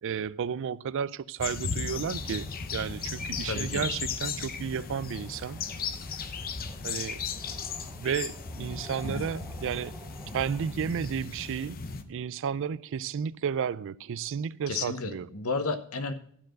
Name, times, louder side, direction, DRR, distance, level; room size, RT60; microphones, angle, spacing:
voice 1, 0.0-5.6 6.8-7.2 8.0-9.9 10.3-11.8 12.1-15.3, right 7 dB, 60° right, 0.4 m, -32 dB
sound 1, 1.4-12.0, left 5 dB, 40° left, 0.7 m, -36 dB
sound 2, 1.9-10.7, right 2 dB, 15° right, 0.6 m, -53 dB
voice 2, 3.4-3.9 9.0-9.3 14.7-16.1, left 4 dB, 80° left, 1.0 m, -32 dB
12.0 x 4.6 x 7.5 m
head